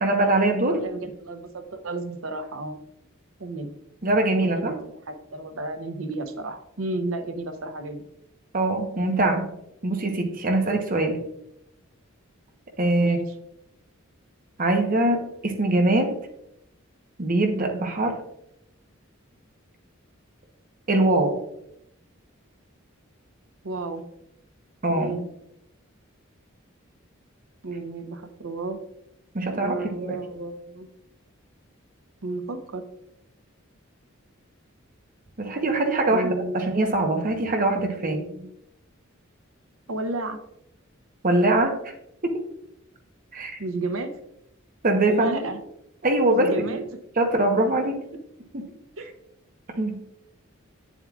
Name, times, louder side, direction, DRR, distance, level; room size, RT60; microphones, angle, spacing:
voice 1, 0.0-0.8 4.0-4.8 8.5-9.5 9.8-11.2 12.8-13.2 14.6-16.2 17.2-18.2 20.9-21.4 24.8-25.1 29.3-30.2 35.4-38.2 41.2-41.9 42.2-42.4 43.3-43.6 44.8-45.5 46.0-46.8 47.2-48.0 49.8-50.0, right 2 dB, 40° right, 4 dB, 0.9 m, -23 dB
voice 2, 0.8-2.8 3.4-3.7 4.4-8.1 13.0-13.3 23.6-24.1 24.9-25.3 27.6-28.8 29.4-30.9 32.2-32.8 36.1-36.7 38.0-38.5 39.9-40.4 43.6-44.2 45.1-45.6 46.3-46.9 49.0-49.1, right 2 dB, 75° right, 7 dB, 0.8 m, -32 dB
8.9 x 7.2 x 2.4 m, 0.81 s
head